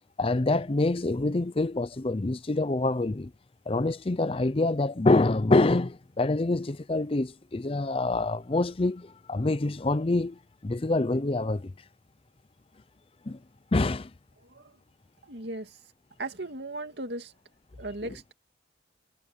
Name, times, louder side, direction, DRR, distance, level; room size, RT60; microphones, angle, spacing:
voice 1, 0.2-3.3 3.7-11.7 13.3-13.4 13.7-14.1, left 2 dB, 30° left, 0.6 m, -26 dB
voice 2, 14.4-14.8 15.2-15.8 16.2-17.3 17.8-18.3, right 2 dB, 70° right, 2.4 m, -37 dB
head